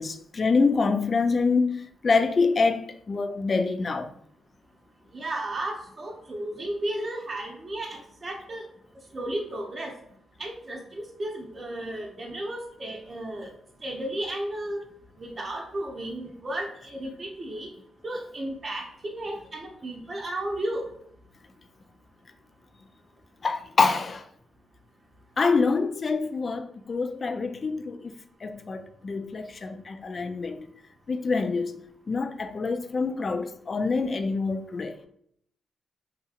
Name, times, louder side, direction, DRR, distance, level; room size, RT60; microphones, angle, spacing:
voice 1, 0.0-1.8 2.0-4.1 23.4-24.2 25.4-28.1 28.4-30.6 31.1-31.8 32.1-35.0, left 4 dB, 45° left, 0.3 m, -26 dB
voice 2, 5.1-8.7 9.1-10.0 10.4-13.5 13.8-14.8 15.2-17.7 18.0-20.9, right 1 dB, 40° right, 0.6 m, -34 dB
2.7 x 2.7 x 2.4 m
cardioid pair, 65°, 0 cm